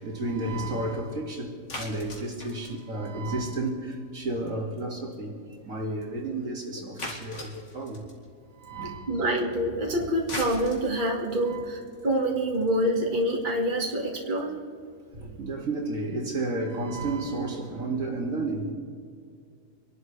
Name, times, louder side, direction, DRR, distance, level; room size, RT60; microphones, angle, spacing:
voice 1, 0.0-5.3 5.6-8.0 8.5-9.2 10.0-10.1 11.4-11.7 15.1-18.7, right 2 dB, 70° right, -1 dB, 2.7 m, -32 dB
sound 1, 1.7-3.9 4.2-4.5 4.8-4.9 5.1-5.2 5.5-5.6 6.0-6.1 7.0-8.2 10.0-14.4, left 2 dB, 55° left, 2.6 m, -40 dB
voice 2, 9.1-14.6, right 1 dB, 35° right, -1 dB, 2.0 m, -26 dB
26.0 x 12.0 x 3.3 m, 2.3 s
omnidirectional pair, 1.5 m